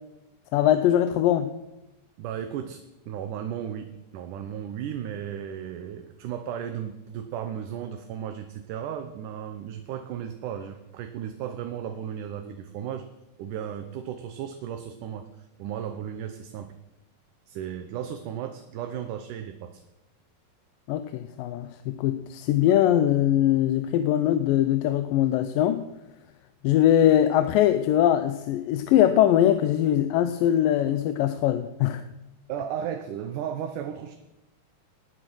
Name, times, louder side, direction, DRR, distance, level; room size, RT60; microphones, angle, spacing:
voice 1, 0.5-1.5 20.9-25.8 26.6-32.0, left 11 dB, 80° left, 10 dB, 2.4 m, -22 dB
voice 2, 2.2-2.8 3.1-13.1 13.4-16.7 17.5-19.8 32.5-34.2, right 9 dB, 75° right, 7 dB, 2.4 m, -35 dB
20.0 x 9.1 x 6.3 m, 0.96 s
omnidirectional pair, 3.9 m